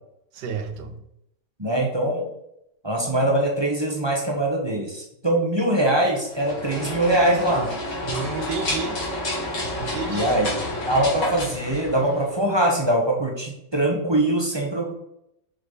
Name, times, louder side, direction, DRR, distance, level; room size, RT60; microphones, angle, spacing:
voice 1, 0.3-1.0 8.0-9.0 9.8-10.3, right 5 dB, 75° right, 8 dB, 1.4 m, -31 dB
voice 2, 1.6-2.3 2.8-7.7 10.1-10.5 10.9-14.9, right 1 dB, 20° right, -1 dB, 1.0 m, -22 dB
sound 1, 6.3-12.4, left 1 dB, 90° left, 2.9 m, -30 dB
5.9 x 4.4 x 4.9 m, 0.81 s
omnidirectional pair, 1.9 m